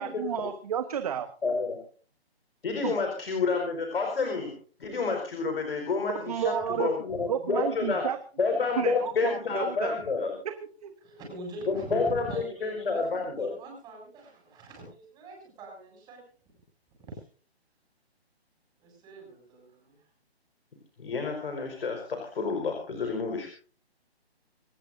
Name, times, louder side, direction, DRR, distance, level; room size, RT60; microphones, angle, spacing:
voice 1, 0.0-1.3 2.8-2.9 6.2-6.9 7.3-8.2 8.8-10.0 10.4-10.9, right 9 dB, 35° right, 9 dB, 1.2 m, -31 dB
voice 2, 1.4-1.7 2.6-4.5 4.8-8.0 8.4-10.3 11.7-12.3 12.6-13.5 21.0-23.5, left 4 dB, 60° left, 3 dB, 5.0 m, -29 dB
voice 3, 11.0-16.2 17.1-17.2 18.8-20.1, right 2 dB, 15° right, 0 dB, 7.5 m, -43 dB
27.0 x 15.5 x 2.7 m, 0.41 s
hypercardioid pair, 160°, 32 cm